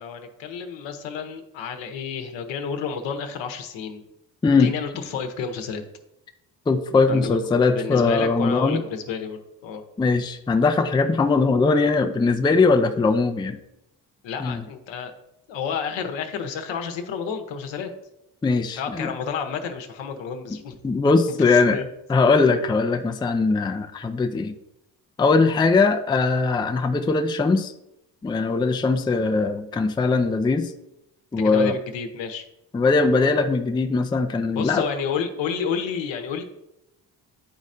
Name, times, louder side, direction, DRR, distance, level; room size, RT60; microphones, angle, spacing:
voice 1, 0.0-4.0 4.6-5.8 7.1-9.8 14.2-15.1 15.5-17.9 18.8-20.7 21.3-21.9 31.4-32.4 34.5-36.4, left 6 dB, 65° left, 6 dB, 0.9 m, -30 dB
voice 2, 6.7-8.8 10.0-13.6 14.4-14.6 18.4-19.1 20.8-21.8 22.1-24.5 25.2-27.7 28.2-30.7 31.3-31.7 32.7-34.8, left 4 dB, 10° left, 6 dB, 0.4 m, -20 dB
9.6 x 4.1 x 2.6 m, 0.87 s
hypercardioid pair, 45°, 49 cm